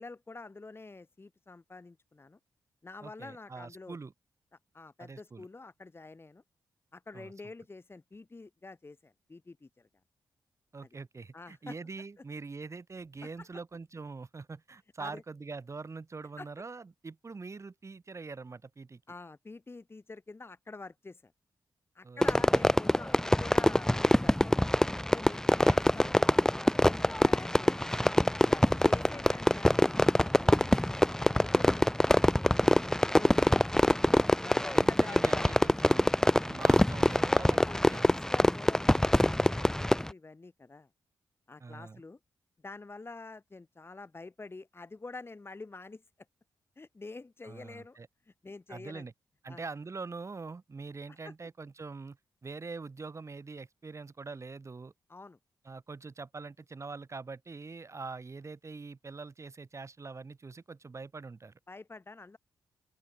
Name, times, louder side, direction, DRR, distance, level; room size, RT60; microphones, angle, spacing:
voice 1, 0.0-2.4 2.8-4.0 4.7-6.4 6.9-9.9 11.3-11.8 13.2-13.5 15.0-15.2 16.4-16.5 19.1-21.3 22.0-24.6 25.1-26.3 26.6-27.9 28.4-30.0 30.4-31.9 32.4-33.8 34.4-35.5 36.5-36.7 37.6-40.9 41.5-42.2 42.6-46.0 46.8-48.0 48.3-49.1 49.5-49.6 51.1-51.3 55.1-55.4 61.7-62.4, left 3 dB, 30° left, 3.5 m, -47 dB
voice 2, 3.0-4.1 5.0-5.5 7.1-7.3 10.7-19.0 22.0-22.6 25.5-26.4 28.8-29.1 30.5-30.8 34.7-36.2 36.4-38.1 41.6-42.0 47.4-48.1 48.7-49.1 49.4-52.2 52.4-54.9 55.6-61.5, right 4 dB, 40° right, 2.5 m, -44 dB
Fireworks, 22.2-40.1, left 1 dB, 5° left, 0.7 m, -25 dB
open air
cardioid pair, 65°, 8 cm